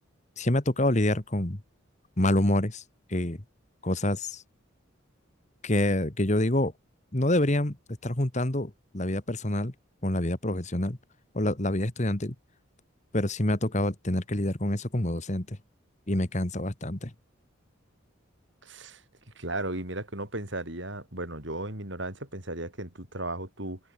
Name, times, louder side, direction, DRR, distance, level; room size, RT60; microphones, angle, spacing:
voice 1, 0.4-1.6 2.2-2.8 3.1-3.4 3.8-4.4 5.6-6.7 7.1-7.8 8.0-9.7 10.0-11.0 11.3-12.4 13.1-15.6 16.1-17.1, left 1 dB, 35° left, 1.7 m, -27 dB
voice 2, 18.6-19.0 19.4-23.8, right 2 dB, 60° right, 5.7 m, -35 dB
head